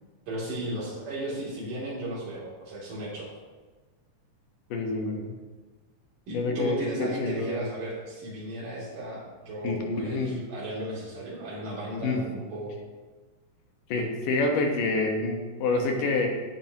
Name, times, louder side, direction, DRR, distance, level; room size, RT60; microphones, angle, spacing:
voice 1, 0.3-3.3 6.3-12.8, right 1 dB, 85° right, -7 dB, 4.7 m, -35 dB
voice 2, 4.7-5.4 6.3-7.6 9.6-10.4 12.0-12.2 13.9-16.3, left 3 dB, 85° left, 2 dB, 3.0 m, -27 dB
17.0 x 9.2 x 3.0 m, 1.3 s
omnidirectional pair, 3.7 m